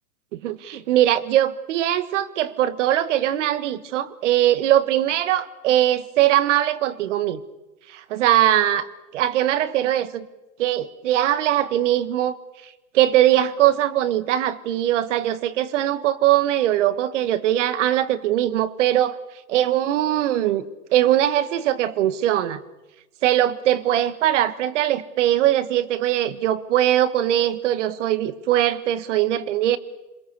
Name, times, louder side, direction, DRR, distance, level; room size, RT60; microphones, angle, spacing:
voice 1, 0.3-7.4 7.9-8.9 9.1-10.3 10.6-12.4 12.9-19.2 19.5-20.7 20.9-22.6 23.2-29.8, right 12 dB, 50° right, 14 dB, 1.6 m, -21 dB
27.5 x 21.5 x 6.9 m, 1.1 s
hypercardioid pair, 140°, 45 cm